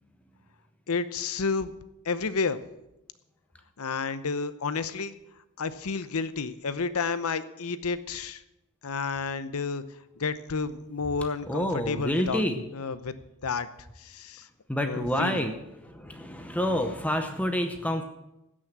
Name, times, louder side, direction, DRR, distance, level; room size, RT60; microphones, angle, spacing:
voice 1, 0.9-1.7 2.0-2.6 3.8-5.1 5.6-8.4 8.8-9.8 10.2-12.4 12.7-13.1 13.4-13.7 14.0-14.5 14.8-15.4, left 4 dB, 70° left, 13 dB, 0.8 m, -30 dB
voice 2, 11.5-12.7 14.7-18.0, equal, 5° left, 6 dB, 0.8 m, -28 dB
16.0 x 6.3 x 7.4 m, 0.90 s
head